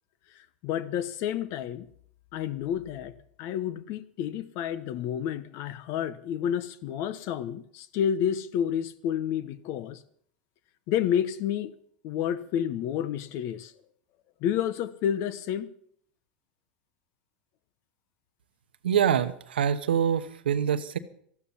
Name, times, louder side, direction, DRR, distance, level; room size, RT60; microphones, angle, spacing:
voice 1, 0.3-1.9 2.3-10.0 10.9-11.7 12.0-13.7 14.4-15.7, left 9 dB, 55° left, 14 dB, 1.1 m, -30 dB
voice 2, 18.8-21.0, right 8 dB, 90° right, 11 dB, 1.1 m, -25 dB
14.5 x 12.0 x 5.7 m, 0.65 s
hypercardioid pair, 110°, 5 cm